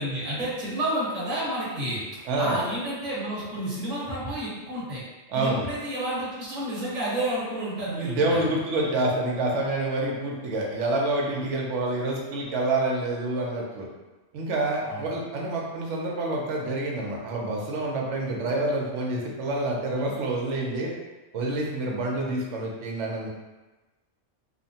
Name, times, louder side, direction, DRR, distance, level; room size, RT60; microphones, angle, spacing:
voice 1, 0.0-2.0 2.4-5.0 5.3-8.4 14.9-15.0, right 1 dB, 35° right, -8 dB, 0.9 m, -30 dB
voice 2, 2.3-2.6 5.3-5.6 8.0-13.9 14.3-20.9 21.3-23.3, right 2 dB, 70° right, -2 dB, 0.9 m, -27 dB
2.8 x 2.1 x 2.7 m, 1.1 s
omnidirectional pair, 1.3 m